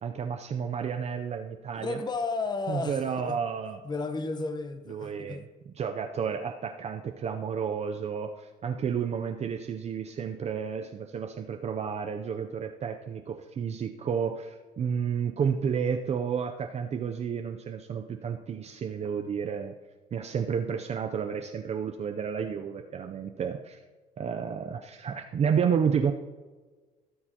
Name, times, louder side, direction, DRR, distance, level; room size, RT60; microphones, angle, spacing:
voice 1, 0.0-2.0 2.7-3.8 4.9-19.7 20.1-23.8 24.2-26.1, right 7 dB, 40° right, 5 dB, 0.6 m, -31 dB
voice 2, 1.7-3.4 3.8-5.4, left 3 dB, 25° left, 9 dB, 0.9 m, -33 dB
16.5 x 6.6 x 2.9 m, 1.3 s
cardioid pair, 110°, 17 cm